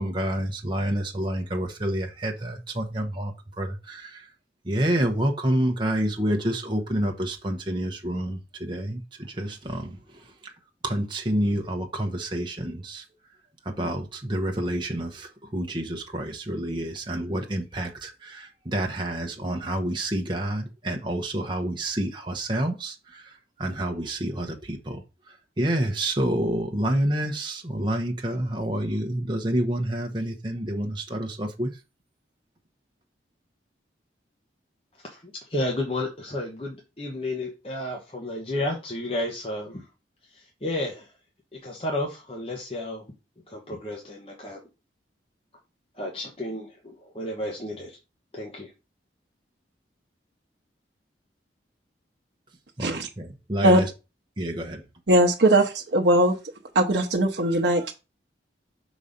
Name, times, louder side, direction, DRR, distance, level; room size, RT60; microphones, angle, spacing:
voice 1, 0.0-4.3 4.6-10.5 10.8-13.0 13.6-25.0 25.3-31.7 52.8-53.9 54.4-54.8, right 1 dB, 25° right, 0.9 m, -28 dB
voice 2, 35.1-39.9 40.3-41.1 41.5-43.0 43.5-44.7 46.0-48.0 48.3-48.7, left 1 dB, 30° left, 1.1 m, -32 dB
voice 3, 55.1-56.4 56.7-57.9, right 1 dB, 70° right, 0.9 m, -20 dB
5.6 x 4.1 x 5.1 m
head